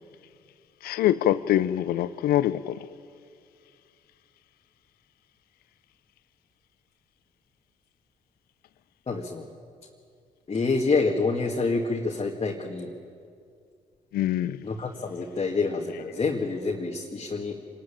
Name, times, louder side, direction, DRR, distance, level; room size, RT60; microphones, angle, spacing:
voice 1, 0.8-2.8 14.1-14.6, left 12 dB, 75° left, 0.7 m, -24 dB
voice 2, 9.1-9.5 10.5-12.9 14.6-17.6, left 3 dB, 40° left, 2.1 m, -27 dB
26.0 x 13.0 x 8.9 m
hypercardioid pair, 55°, 16 cm